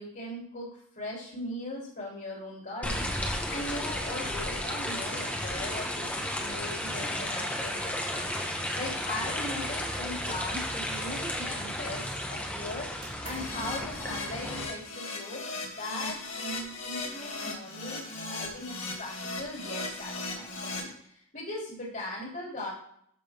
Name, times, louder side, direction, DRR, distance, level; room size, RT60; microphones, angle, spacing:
voice 1, 0.0-22.7, left 1 dB, 45° left, -3 dB, 2.9 m, -39 dB
sound 1, 2.8-14.7, left 1 dB, 5° left, 1.2 m, -33 dB
sound 2, 9.9-10.7 10.9-11.9 13.0-13.8, right 3 dB, 80° right, 2.4 m, -50 dB
Keyboard (musical), 13.3-20.8, left 3 dB, 65° left, 2.4 m, -37 dB
13.0 x 6.1 x 3.5 m, 0.67 s
head